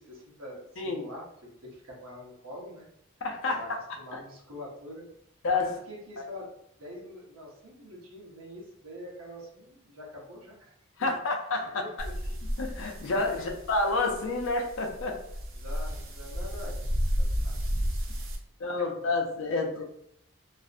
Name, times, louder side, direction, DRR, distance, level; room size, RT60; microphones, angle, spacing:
voice 1, 0.0-2.9 3.4-3.7 4.0-5.1 5.6-6.5 6.8-10.7 11.0-11.2 11.6-12.4 13.3-13.4 15.6-17.6 18.8-19.1 19.7-19.8, left 1 dB, 85° right, -2 dB, 0.8 m, -45 dB
voice 2, 0.8-1.1 3.2-3.6 4.1-4.2 5.4-5.7 11.0-11.8 12.6-15.2 18.6-19.8, left 3 dB, 65° left, 2 dB, 0.5 m, -29 dB
sound 1, 12.0-18.4, equal, 65° right, 0.5 m, -33 dB
2.5 x 2.0 x 2.4 m, 0.75 s
head